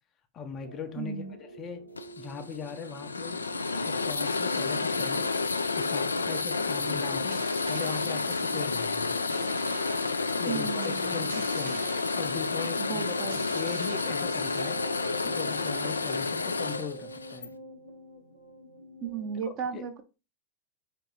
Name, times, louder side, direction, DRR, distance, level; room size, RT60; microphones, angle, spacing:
voice 1, 0.3-1.9 2.2-3.4 3.9-9.2 10.4-14.8 15.2-17.5 19.5-19.9, left 6 dB, 30° left, 0.6 m, -40 dB
sound 1, 0.6-19.4, right 2 dB, 85° right, 0.9 m, -49 dB
voice 2, 1.0-1.3 10.5-11.3 12.8-13.5 19.0-20.0, right 7 dB, 35° right, 0.8 m, -35 dB
sound 2, 2.0-17.5, left 4 dB, 75° left, 0.3 m, -30 dB
sound 3, 3.1-16.1, right 8 dB, 60° right, 0.4 m, -48 dB
4.4 x 3.4 x 3.2 m
figure-of-eight pair, 90°, 0 cm